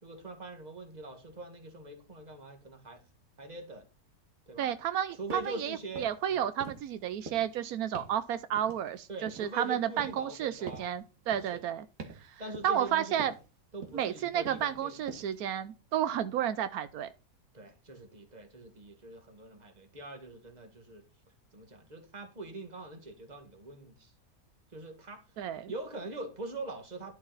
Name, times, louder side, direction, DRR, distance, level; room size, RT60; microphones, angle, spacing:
voice 1, 0.0-3.0 3.4-3.9 4.5-4.7 5.1-6.5 9.1-10.9 11.5-11.7 12.4-13.3 13.7-15.0 17.5-21.0 21.5-24.1 24.7-25.3 25.7-27.1, right 2 dB, 30° right, 1.8 m, -43 dB
voice 2, 4.6-11.9 12.2-13.3 13.9-17.1 25.4-25.7, right 10 dB, 85° right, 1.2 m, -32 dB
sound 1, 5.3-5.6 5.9-6.3 6.6-7.0 7.3-7.6 7.9-8.2 8.6-9.6 10.0-10.3 10.7-10.9 11.3-11.6 12.0-12.3 12.5-12.9 13.2-13.5 13.8-14.2 14.4-14.8 15.1-15.4, right 3 dB, 70° right, 2.2 m, -45 dB
11.0 x 7.4 x 4.0 m
omnidirectional pair, 1.5 m